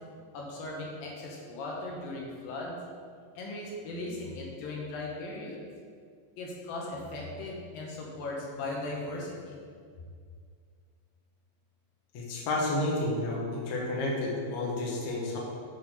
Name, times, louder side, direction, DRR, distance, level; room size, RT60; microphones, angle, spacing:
voice 1, 0.3-2.8 3.4-5.7 6.4-9.6, left 2 dB, 85° left, -2 dB, 2.9 m, -38 dB
voice 2, 12.1-15.4, left 2 dB, 65° left, -3 dB, 2.3 m, -31 dB
9.1 x 4.0 x 4.3 m, 2.1 s
omnidirectional pair, 4.0 m